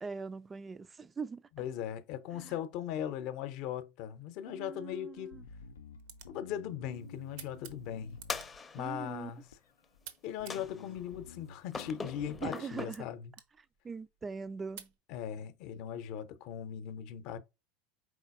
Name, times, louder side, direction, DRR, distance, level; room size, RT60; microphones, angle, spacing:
voice 1, 0.0-1.4 2.3-2.6 4.4-5.4 8.8-9.3 12.4-13.1 13.8-14.9, right 5 dB, 20° right, 0.4 m, -41 dB
voice 2, 1.6-5.4 6.3-8.2 8.7-9.5 10.2-13.3 15.1-17.4, left 10 dB, 55° left, 0.7 m, -39 dB
sound 1, 4.9-15.0, right 9 dB, 65° right, 0.8 m, -57 dB
Bass guitar, 5.3-8.9 9.5-10.1 10.4-12.5, left 4 dB, 80° left, 0.4 m, -51 dB
sound 2, 8.3-9.1 10.5-11.1 11.7-12.9, left 4 dB, 20° left, 0.6 m, -41 dB
5.0 x 4.0 x 2.5 m
hypercardioid pair, 80°, 0 cm